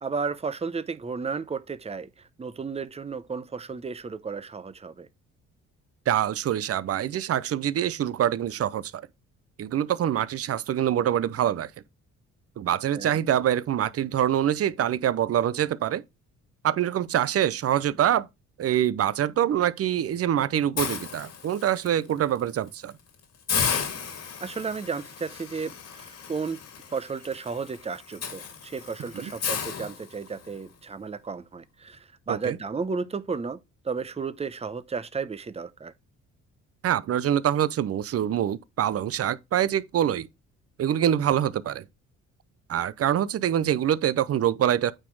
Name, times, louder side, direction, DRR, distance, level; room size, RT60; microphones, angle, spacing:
voice 1, 0.0-2.1 2.4-5.1 12.9-13.2 24.4-26.6 26.9-33.6 33.8-35.9, right 5 dB, 20° right, 0.8 m, -33 dB
voice 2, 6.1-8.9 9.6-11.7 12.6-16.0 16.6-18.3 18.6-22.9 29.1-29.3 32.3-32.6 36.8-40.3 40.8-41.8 42.7-44.9, right 10 dB, 50° right, 0.7 m, -25 dB
Hiss, 20.8-21.9 22.4-22.6 22.9-23.0 23.5-30.6, left 6 dB, 55° left, 2.1 m, -33 dB
9.0 x 4.3 x 4.7 m
cardioid pair, 90°, 30 cm